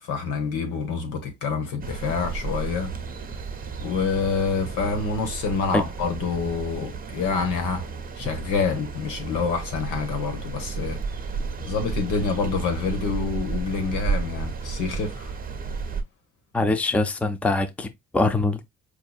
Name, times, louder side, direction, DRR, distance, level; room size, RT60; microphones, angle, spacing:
voice 1, 0.0-2.9 3.8-7.9 8.2-11.0 11.7-15.3, left 5 dB, 90° left, 1.2 m, -27 dB
sound 1, 1.8-16.0, right 5 dB, 30° right, 0.6 m, -33 dB
voice 2, 16.5-18.7, left 2 dB, 5° left, 0.4 m, -24 dB
4.6 x 2.6 x 2.3 m
cardioid pair, 90°, 30 cm